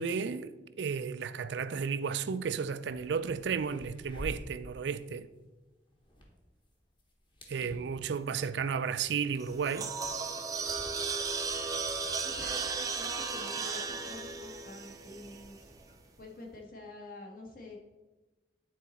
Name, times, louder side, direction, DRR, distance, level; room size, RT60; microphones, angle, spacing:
voice 1, 0.0-5.3 7.5-9.9, right 6 dB, 70° right, 0.4 m, -33 dB
sound 1, 2.4-2.5 2.8-16.2, equal, 25° left, 1.2 m, -51 dB
voice 2, 7.6-8.2 12.2-15.7 16.2-17.8, left 2 dB, 50° left, 1.4 m, -48 dB
sound 2, 9.4-15.7, right 4 dB, 20° right, 0.5 m, -35 dB
9.4 x 4.1 x 4.1 m
head